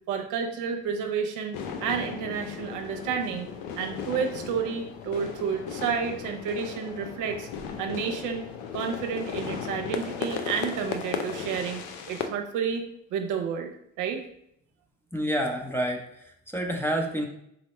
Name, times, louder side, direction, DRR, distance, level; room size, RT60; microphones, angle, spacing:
voice 1, 0.1-3.5 3.8-7.5 7.8-8.4 8.7-11.8 12.1-12.8 13.1-13.7 14.0-14.2, right 6 dB, 80° right, 4 dB, 0.7 m, -30 dB
sound 1, 1.5-12.3, left 6 dB, 90° left, 0.5 m, -36 dB
voice 2, 15.1-17.3, equal, 5° left, 2 dB, 0.7 m, -29 dB
4.1 x 2.0 x 4.3 m, 0.73 s
supercardioid pair, 75°, 30 cm